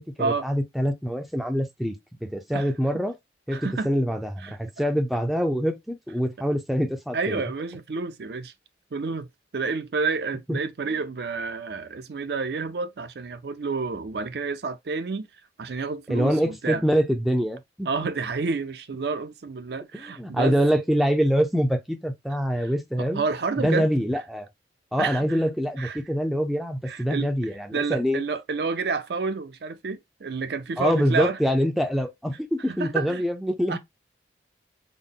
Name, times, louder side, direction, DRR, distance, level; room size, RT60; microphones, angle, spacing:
voice 1, 0.2-3.1 3.5-7.4 10.5-10.6 16.1-17.9 20.0-23.2 23.6-24.5 24.9-28.2 30.8-33.8, equal, ahead, 0.4 m, -25 dB
voice 2, 3.5-3.9 4.4-4.6 7.1-8.5 8.9-9.3 9.5-15.3 15.6-16.8 17.8-20.6 22.6-22.7 23.0-23.9 25.0-25.4 25.8-26.0 26.9-27.3 27.7-31.4 32.7-33.2 33.7-33.8, right 4 dB, 65° right, 0.5 m, -29 dB
3.7 x 2.1 x 3.6 m
head